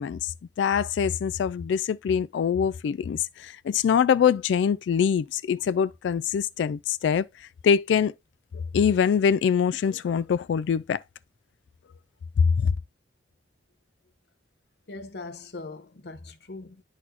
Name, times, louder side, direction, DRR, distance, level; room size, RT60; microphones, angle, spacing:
voice 1, 0.0-7.2 7.6-8.1 8.5-11.0 12.6-12.7, left 7 dB, 85° left, 0.3 m, -24 dB
voice 2, 14.9-16.8, left 3 dB, 60° left, 0.7 m, -40 dB
10.0 x 4.1 x 2.7 m
head